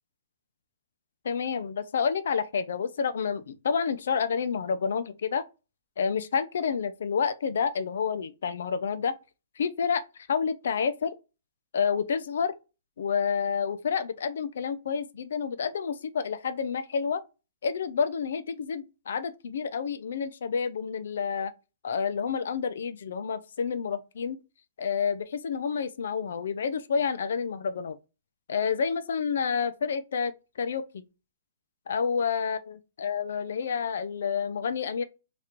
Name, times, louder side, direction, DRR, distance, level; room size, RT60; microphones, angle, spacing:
voice 1, 1.2-5.4 6.0-9.1 9.6-10.0 10.3-11.1 11.7-12.5 13.0-17.2 17.6-21.5 21.8-24.4 24.8-28.0 28.5-30.3 30.6-31.0 31.9-35.0, left 6 dB, 70° left, 0.6 m, -29 dB
3.0 x 2.5 x 4.3 m
hypercardioid pair, 160°, 0 cm